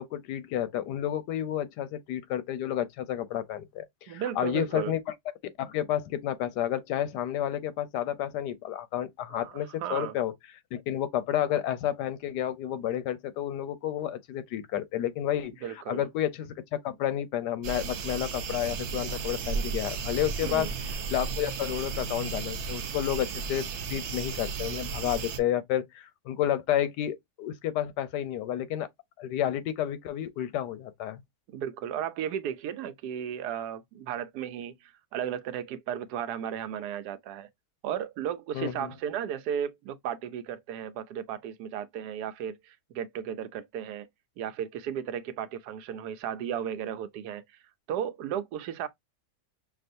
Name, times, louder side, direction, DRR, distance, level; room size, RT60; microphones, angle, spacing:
voice 1, 0.0-5.0 5.6-10.3 10.7-15.5 15.9-20.7 21.1-23.6 23.9-28.9 29.2-31.2 38.5-38.9, left 11 dB, 90° left, 1.3 m, -31 dB
voice 2, 4.1-5.0 9.3-10.1 15.6-16.1 20.4-20.7 31.5-37.5 37.8-44.1 44.4-47.4 47.9-48.9, right 9 dB, 80° right, 1.1 m, -35 dB
sound 1, 17.6-25.4, right 5 dB, 60° right, 0.8 m, -34 dB
6.0 x 2.4 x 2.6 m
omnidirectional pair, 1.7 m